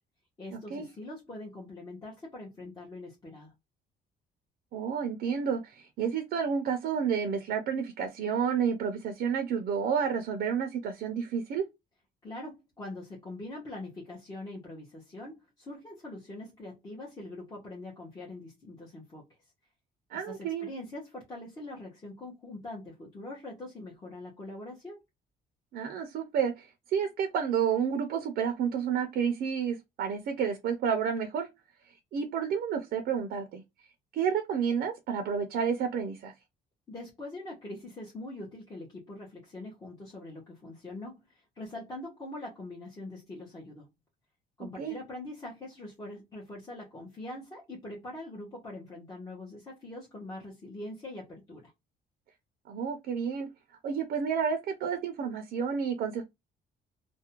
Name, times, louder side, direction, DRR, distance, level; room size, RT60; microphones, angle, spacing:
voice 1, 0.4-3.5 12.2-19.2 20.1-25.0 36.9-43.9 44.6-51.7, left 2 dB, 20° left, 0.8 m, -43 dB
voice 2, 4.7-11.6 20.1-20.7 25.7-26.7 26.9-31.5 32.1-33.6 34.1-36.3 44.8-45.0 52.7-53.5 53.8-56.2, right 7 dB, 60° right, 0.5 m, -30 dB
2.4 x 2.1 x 2.8 m
cardioid pair, 155°, 18 cm